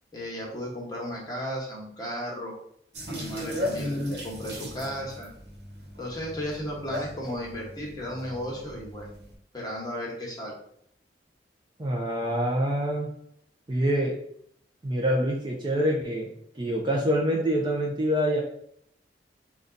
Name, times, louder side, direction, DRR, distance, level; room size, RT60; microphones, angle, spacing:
voice 1, 0.1-2.5 3.1-5.3 6.0-9.1 9.5-10.6, equal, 20° left, -2 dB, 1.1 m, -35 dB
sound 1, 2.9-9.3, left 1 dB, 75° right, 1.1 m, -36 dB
voice 2, 11.8-13.1 13.7-14.2 14.8-16.3 16.6-18.4, equal, 25° right, -1 dB, 0.5 m, -25 dB
3.9 x 2.3 x 3.8 m, 0.69 s
head